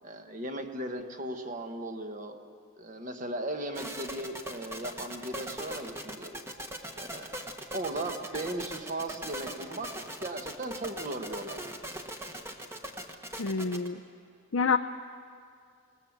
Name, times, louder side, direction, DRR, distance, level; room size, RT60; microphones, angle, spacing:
voice 1, 0.0-2.4 2.8-6.4 6.9-7.4 7.7-9.9 10.2-11.6, right 1 dB, 35° right, 5 dB, 1.4 m, -37 dB
sound 1, 3.7-13.9, right 1 dB, 10° right, 1.3 m, -40 dB
voice 2, 13.4-14.0 14.5-14.8, left 5 dB, 60° left, 7 dB, 0.6 m, -27 dB
27.0 x 20.0 x 7.4 m, 2.3 s
head